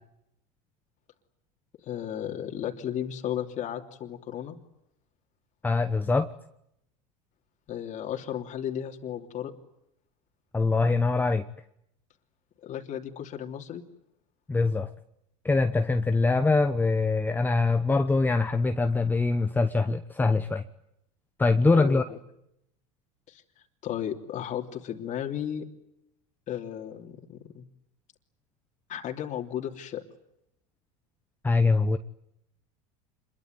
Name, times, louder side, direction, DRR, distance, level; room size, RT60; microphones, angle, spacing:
voice 1, 1.8-4.6 7.7-9.5 12.6-13.8 21.8-22.2 23.3-25.6 26.5-27.6 28.9-30.0, left 10 dB, 40° left, 2 dB, 3.0 m, -34 dB
voice 2, 5.6-6.3 10.5-11.4 14.5-14.9 15.4-20.6 21.4-22.0 31.4-32.0, left 3 dB, 10° left, 9 dB, 1.0 m, -23 dB
26.5 x 22.5 x 9.6 m, 0.80 s
supercardioid pair, 120°, 19 cm